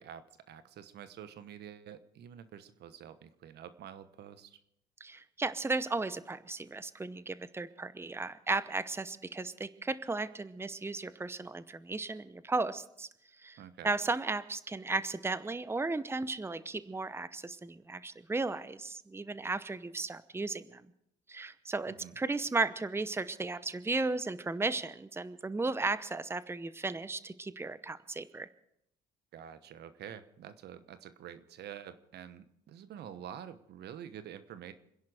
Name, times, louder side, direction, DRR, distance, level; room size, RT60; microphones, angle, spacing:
voice 1, 0.0-4.6 13.6-13.9 21.9-22.1 29.3-34.7, right 9 dB, 70° right, 12 dB, 1.2 m, -48 dB
voice 2, 5.0-13.1 13.4-20.8 21.3-28.5, right 3 dB, 15° right, 14 dB, 0.9 m, -35 dB
27.5 x 10.5 x 5.0 m, 0.77 s
supercardioid pair, 75°, 18 cm